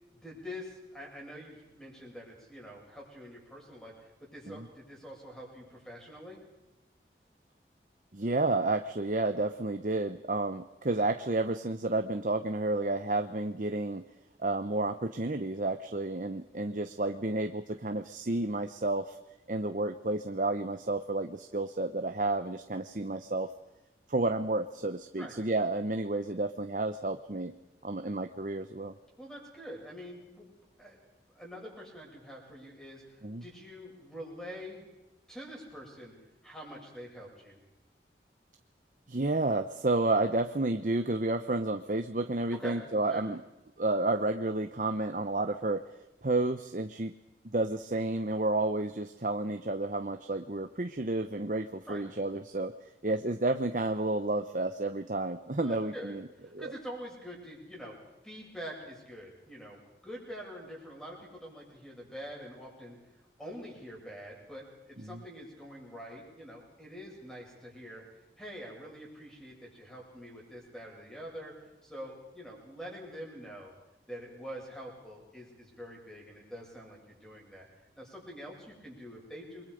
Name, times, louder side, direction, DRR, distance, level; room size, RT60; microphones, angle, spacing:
voice 1, 0.2-6.4 25.2-25.3 29.2-30.5 30.8-31.0 31.3-34.9 35.3-36.2 36.4-37.6 42.5-43.2 51.9-52.1 55.6-56.1 56.4-58.0 58.2-63.0 63.4-68.0 68.4-71.5 71.8-73.7 74.1-77.7 78.0-79.7, equal, 5° left, -2 dB, 7.9 m, -45 dB
voice 2, 8.1-14.0 14.4-19.2 19.5-23.5 24.1-27.5 27.8-28.9 33.2-33.4 39.1-43.4 43.8-45.8 46.2-47.1 47.4-52.7 53.0-56.3 56.5-56.7 65.0-65.2, right 2 dB, 45° right, 7 dB, 0.9 m, -31 dB
29.0 x 23.0 x 5.2 m, 0.96 s
head